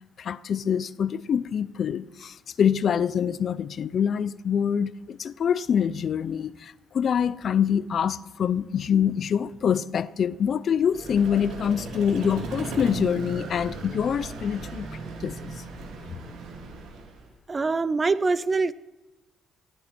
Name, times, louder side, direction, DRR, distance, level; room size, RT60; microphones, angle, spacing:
voice 1, 0.2-14.9 15.2-15.5, left 8 dB, 55° left, 0.6 m, -25 dB
Vehicle, 10.9-17.3, right 3 dB, 90° right, 2.9 m, -36 dB
voice 2, 17.5-18.7, right 3 dB, 30° right, 0.7 m, -24 dB
18.5 x 15.0 x 4.5 m
cardioid pair, 90°, 0 cm